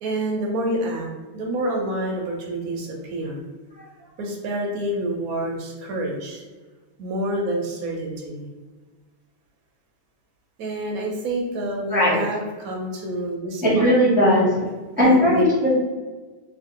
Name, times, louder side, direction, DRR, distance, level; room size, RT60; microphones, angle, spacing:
voice 1, 0.0-1.1 1.3-3.4 4.2-6.4 7.0-8.5 10.6-14.0 15.0-15.4, right 1 dB, 65° right, 0 dB, 1.0 m, -28 dB
voice 2, 11.9-12.2 13.6-14.5 15.0-15.7, equal, 10° right, -8 dB, 0.6 m, -17 dB
2.9 x 2.5 x 3.6 m, 1.3 s
omnidirectional pair, 1.9 m